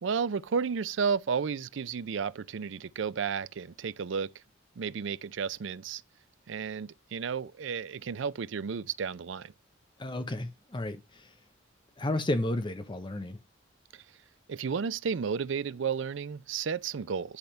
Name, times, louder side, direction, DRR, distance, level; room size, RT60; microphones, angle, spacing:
voice 1, 0.0-4.3 4.8-6.0 6.5-9.5 13.9-14.0 14.5-17.4, right 6 dB, 70° right, 0.4 m, -32 dB
voice 2, 10.0-11.3 12.0-13.4, left 1 dB, 25° left, 0.7 m, -32 dB
10.0 x 3.5 x 6.4 m
head